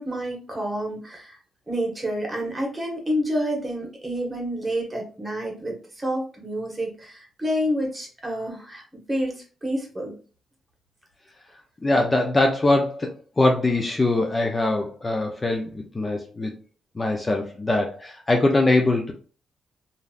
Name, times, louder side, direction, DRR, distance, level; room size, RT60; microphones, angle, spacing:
voice 1, 0.0-1.4 1.7-8.8 9.1-10.1, equal, 20° right, 0 dB, 1.3 m, -28 dB
voice 2, 11.8-16.5 17.0-19.1, left 2 dB, 25° left, 2 dB, 0.5 m, -22 dB
3.0 x 2.6 x 2.4 m, 0.37 s
cardioid pair, 80°, 0 cm